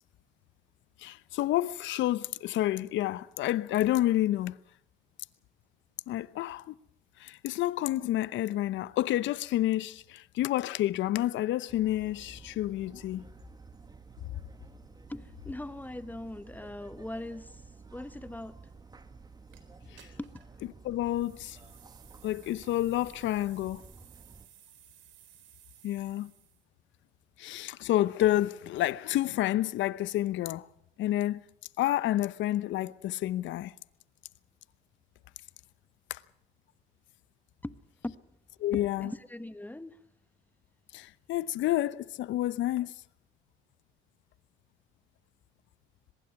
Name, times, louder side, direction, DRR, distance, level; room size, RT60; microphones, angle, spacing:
voice 1, 1.0-4.5 6.1-6.7 7.2-13.2 19.9-20.1 20.8-21.6 22.2-23.8 25.8-26.3 27.4-30.7 31.0-31.4 31.8-33.7 36.1-36.2 38.6-39.1 40.9-42.9, left 14 dB, 70° left, 0.9 m, -29 dB
sound 1, 11.7-24.5, right 4 dB, 20° right, 1.9 m, -52 dB
voice 2, 15.1-17.6 17.9-18.6 20.2-20.3 37.6-37.8 38.0-38.2 38.7-40.0, left 1 dB, 10° left, 1.1 m, -40 dB
sound 2, 19.5-19.6 20.0-20.5 21.0-26.6, right 11 dB, 70° right, 3.9 m, -58 dB
23.5 x 21.5 x 6.0 m
cardioid pair, 95°, 20 cm